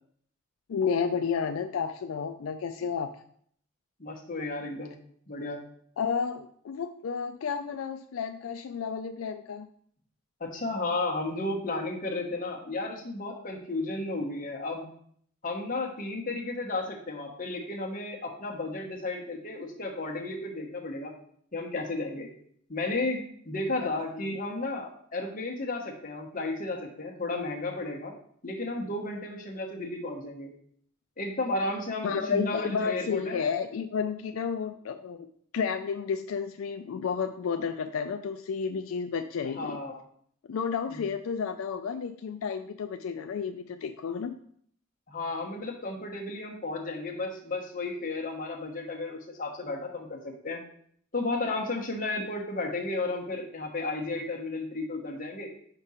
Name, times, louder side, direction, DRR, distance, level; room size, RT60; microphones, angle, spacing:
voice 1, 0.7-3.1 6.0-9.7 24.1-24.3 32.0-35.3 35.5-39.8 40.5-44.4, left 6 dB, 80° left, 7 dB, 0.4 m, -31 dB
voice 2, 4.0-4.9 5.3-5.6 10.4-14.9 15.4-21.1 21.5-22.3 22.7-28.1 28.4-30.5 31.2-33.4 39.6-40.0 40.9-41.0 45.1-50.6 51.1-55.5, left 2 dB, 40° left, 1 dB, 1.1 m, -33 dB
5.2 x 4.8 x 4.2 m, 0.63 s
head